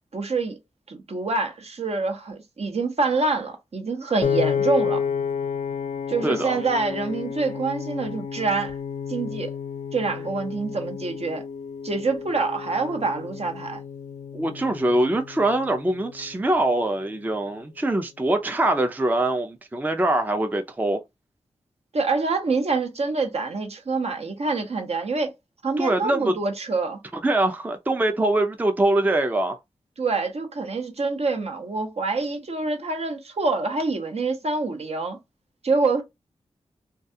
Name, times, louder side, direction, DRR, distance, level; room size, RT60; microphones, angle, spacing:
voice 1, 0.1-0.6 0.9-5.0 6.1-8.8 9.1-9.5 9.9-11.4 11.8-13.8 21.9-25.3 25.6-27.0 30.0-35.2 35.6-36.0, right 3 dB, 60° right, 0.7 m, -26 dB
Piano, 4.2-16.5, left 7 dB, 80° left, 0.4 m, -31 dB
voice 2, 14.3-21.0 25.8-26.3 27.2-29.6, right 1 dB, 15° right, 0.4 m, -23 dB
2.3 x 2.3 x 2.7 m
cardioid pair, 50°, 12 cm